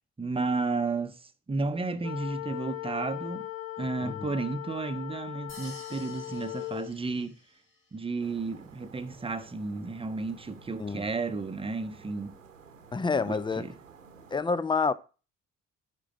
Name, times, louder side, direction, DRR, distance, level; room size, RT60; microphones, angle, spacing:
voice 1, 0.2-3.5 3.8-7.4 7.9-12.3 13.3-13.7, right 3 dB, 15° right, 1.0 m, -33 dB
sound 1, 2.0-6.9, left 14 dB, 80° left, 0.6 m, -39 dB
sound 2, 5.5-7.8, left 2 dB, 30° left, 3.1 m, -51 dB
sound 3, 8.2-14.4, right 5 dB, 85° right, 1.0 m, -53 dB
voice 2, 12.9-13.6 14.3-14.9, left 4 dB, 10° left, 0.6 m, -28 dB
9.9 x 4.7 x 7.4 m
figure-of-eight pair, 50°, 38 cm